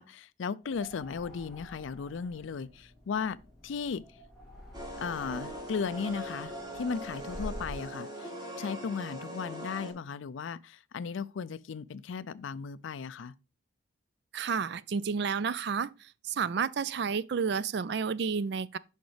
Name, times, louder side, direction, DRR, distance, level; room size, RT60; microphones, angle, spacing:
voice 1, 0.0-3.4 3.6-4.0 5.0-8.3 8.6-13.3, left 6 dB, 75° left, 0.4 m, -36 dB
sound 1, 0.6-7.9, equal, ahead, 2.4 m, -47 dB
sound 2, 4.7-9.9, right 1 dB, 20° right, 1.5 m, -41 dB
voice 2, 14.3-18.8, right 6 dB, 55° right, 0.4 m, -31 dB
6.3 x 5.7 x 3.2 m
head